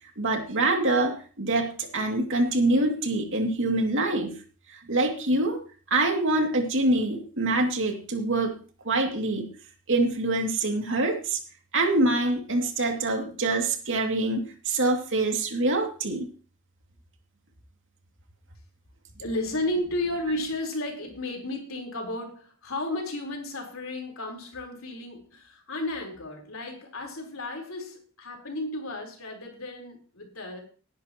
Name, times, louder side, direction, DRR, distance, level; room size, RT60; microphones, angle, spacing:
voice 1, 0.2-4.3 4.7-5.6 5.9-8.6 8.8-9.5 9.9-11.4 11.7-16.3, right 2 dB, 60° right, 3 dB, 2.6 m, -25 dB
voice 2, 19.2-30.6, left 1 dB, 70° left, 2 dB, 4.3 m, -33 dB
19.0 x 10.5 x 3.1 m, 0.38 s
head